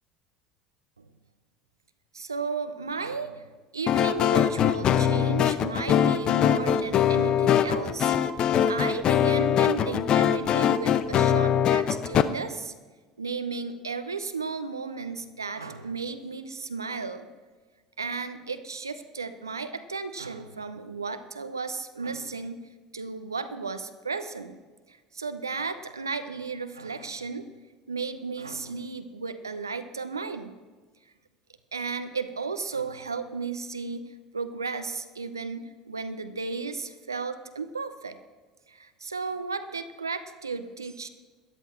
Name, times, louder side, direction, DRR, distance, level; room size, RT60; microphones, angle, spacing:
voice 1, 2.1-8.1 8.7-12.7 13.2-17.3 18.0-22.6 22.9-24.6 24.9-27.5 27.9-30.5 31.7-34.1 34.3-38.2 38.7-41.1, right 4 dB, 85° right, 10 dB, 0.7 m, -34 dB
sound 1, 3.9-12.2, left 9 dB, 45° left, 0.7 m, -22 dB
13.5 x 11.0 x 4.5 m, 1.3 s
figure-of-eight pair, 65°, 2 cm